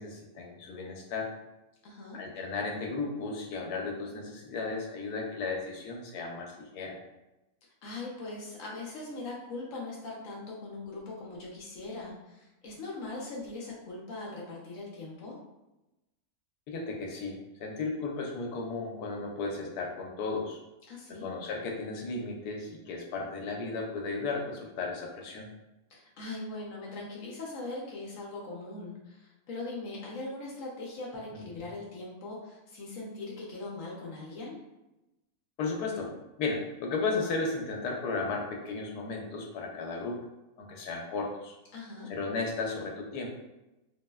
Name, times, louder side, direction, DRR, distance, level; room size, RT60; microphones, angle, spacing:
voice 1, 0.0-1.3 2.1-7.0 16.7-20.6 21.1-25.5 31.3-31.7 35.6-36.1 36.4-40.2 40.6-41.5 42.1-43.3, left 3 dB, 85° left, 0 dB, 1.1 m, -35 dB
voice 2, 1.8-2.2 7.8-15.4 20.9-21.3 25.9-34.6 41.7-42.1, left 2 dB, 65° left, -3 dB, 0.9 m, -40 dB
3.2 x 2.0 x 2.2 m, 0.97 s
omnidirectional pair, 1.6 m